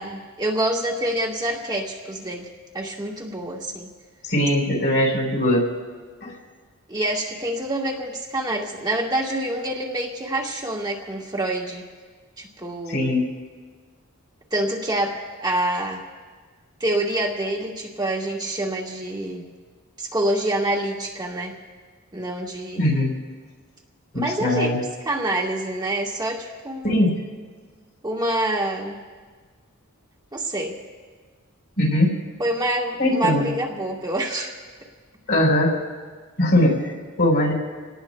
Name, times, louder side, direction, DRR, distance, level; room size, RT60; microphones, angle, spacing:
voice 1, 0.0-2.5 2.7-3.9 6.9-11.9 12.4-13.2 14.5-16.0 16.8-19.4 20.0-21.6 22.1-23.0 24.1-24.7 25.0-27.1 28.0-29.0 30.3-30.8 32.4-34.5, right 1 dB, 20° right, -2 dB, 1.4 m, -26 dB
voice 2, 4.2-5.6 6.2-6.3 12.9-13.3 22.8-23.1 24.1-24.8 26.8-27.1 31.8-32.2 33.0-33.5 35.3-35.8 36.4-37.5, left 1 dB, 55° left, -2 dB, 4.3 m, -20 dB
28.0 x 18.5 x 2.2 m, 1.5 s
head